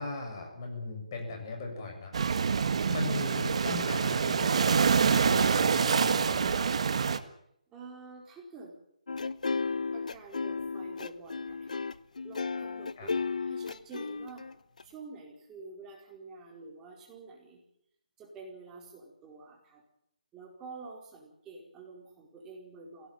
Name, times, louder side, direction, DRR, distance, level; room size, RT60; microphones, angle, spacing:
voice 1, 0.0-2.1 2.9-6.8 13.0-13.1, left 2 dB, 35° left, 2 dB, 7.6 m, -38 dB
sound 1, 2.1-7.2, right 6 dB, 55° right, 1.6 m, -26 dB
voice 2, 7.7-8.7 9.9-11.8 12.2-14.5 14.8-17.6 18.2-19.8 20.3-23.1, right 3 dB, 10° right, -1 dB, 4.6 m, -48 dB
sound 2, 9.1-14.8, left 4 dB, 75° left, 1.1 m, -34 dB
22.0 x 17.5 x 9.1 m, 0.73 s
hypercardioid pair, 165°, 4 cm